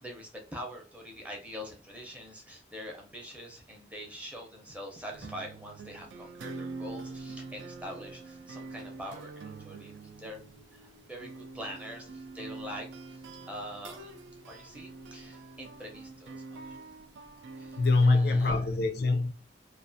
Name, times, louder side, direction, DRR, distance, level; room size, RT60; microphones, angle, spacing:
voice 1, 0.0-13.2 13.5-14.2 14.5-16.8 17.6-18.6, equal, 10° right, 0.5 m, -44 dB
Guitar across the storm rain and washing machine, 5.1-18.2, right 3 dB, 85° right, 0.4 m, -45 dB
voice 2, 17.8-19.3, left 3 dB, 60° left, 0.4 m, -24 dB
2.3 x 2.3 x 2.6 m
head